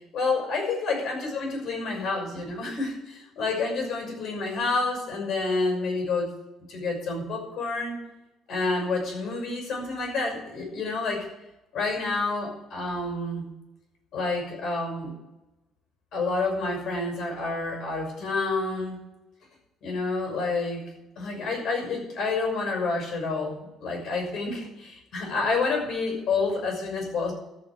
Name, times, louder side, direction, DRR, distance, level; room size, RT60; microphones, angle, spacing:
voice 1, 0.1-6.3 6.7-8.1 8.5-11.3 11.7-13.4 14.1-15.1 16.1-19.0 19.8-20.8 21.2-27.3, left 3 dB, 55° left, 2 dB, 6.0 m, -29 dB
14.0 x 6.0 x 9.9 m, 0.99 s
cardioid pair, 155°, 0 cm